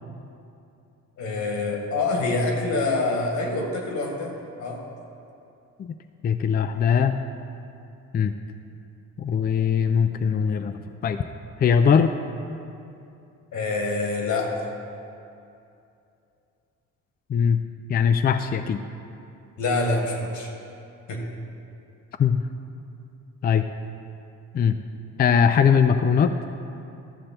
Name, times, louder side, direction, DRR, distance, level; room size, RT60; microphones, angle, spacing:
voice 1, 1.2-4.9 13.5-14.6 19.6-20.5 21.1-21.2, left 3 dB, 75° left, 1 dB, 1.8 m, -26 dB
voice 2, 6.2-7.2 8.1-8.3 9.2-11.2 11.6-12.2 17.3-17.6 17.9-18.8 22.2-22.4 23.4-23.7 24.5-24.8 25.2-26.4, left 7 dB, 30° left, 8 dB, 0.4 m, -20 dB
12.5 x 6.6 x 4.4 m, 2.7 s
cardioid pair, 90°, 30 cm